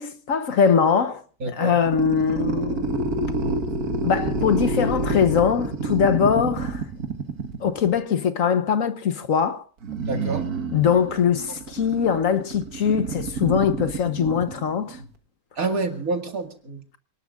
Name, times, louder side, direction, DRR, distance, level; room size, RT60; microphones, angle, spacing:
voice 1, 0.0-3.1 4.0-6.8 7.6-9.6 10.7-15.0, left 7 dB, 65° left, 1.3 m, -22 dB
voice 2, 1.4-1.8 10.0-10.5 15.6-16.8, right 3 dB, 70° right, 2.5 m, -28 dB
sound 1, 1.8-8.0 9.8-15.1, right 3 dB, 85° right, 2.0 m, -28 dB
27.5 x 19.0 x 2.4 m
omnidirectional pair, 1.6 m